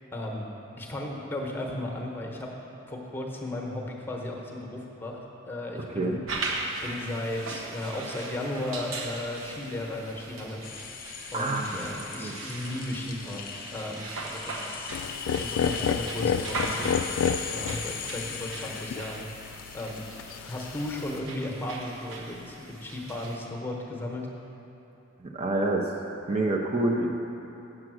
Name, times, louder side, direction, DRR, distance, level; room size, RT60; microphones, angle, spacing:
voice 1, 0.1-0.5 0.8-2.5 2.9-6.2 6.8-10.6 11.3-16.8 17.5-19.3 19.7-20.0 20.4-24.3, left 1 dB, 10° left, 0 dB, 1.0 m, -35 dB
voice 2, 5.8-6.2 11.3-11.8 12.2-12.4 17.6-17.8 25.2-25.9 26.3-27.1, right 2 dB, 30° right, 0 dB, 0.5 m, -27 dB
sound 1, 6.3-23.4, right 2 dB, 90° right, 1.0 m, -39 dB
sound 2, 10.6-21.3, left 6 dB, 45° left, 0.7 m, -40 dB
sound 3, 14.9-21.2, left 7 dB, 75° left, 0.3 m, -31 dB
7.6 x 7.3 x 6.2 m, 2.9 s
head